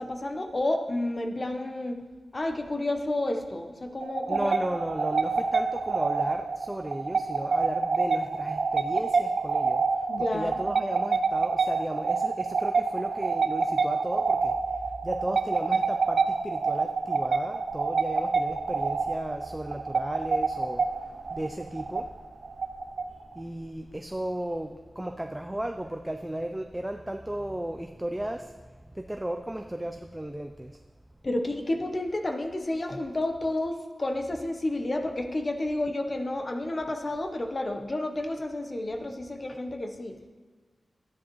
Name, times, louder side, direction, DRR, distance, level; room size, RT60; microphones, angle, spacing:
voice 1, 0.0-2.0 2.3-4.5 10.1-10.6 31.2-40.2, left 1 dB, 35° left, 5 dB, 0.9 m, -30 dB
sound 1, 4.0-23.4, right 4 dB, 75° right, 0.4 m, -27 dB
voice 2, 4.3-9.8 10.2-14.5 15.0-20.8 21.3-22.1 23.4-28.5 29.0-30.7, right 1 dB, 10° right, 6 dB, 0.4 m, -34 dB
12.0 x 9.9 x 3.1 m, 1.4 s
wide cardioid pair, 110°, 0 cm